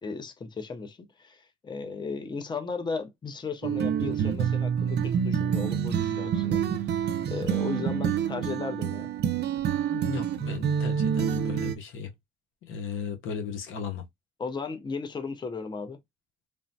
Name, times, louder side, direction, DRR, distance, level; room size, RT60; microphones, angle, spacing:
voice 1, 0.0-6.6 6.9-9.1 14.4-16.0, left 4 dB, 20° left, 0.5 m, -35 dB
sound 1, 3.6-11.8, right 8 dB, 60° right, 0.5 m, -27 dB
voice 2, 9.9-12.1 12.6-14.0, left 6 dB, 85° left, 0.8 m, -35 dB
3.2 x 2.1 x 2.5 m
cardioid pair, 90°, 20 cm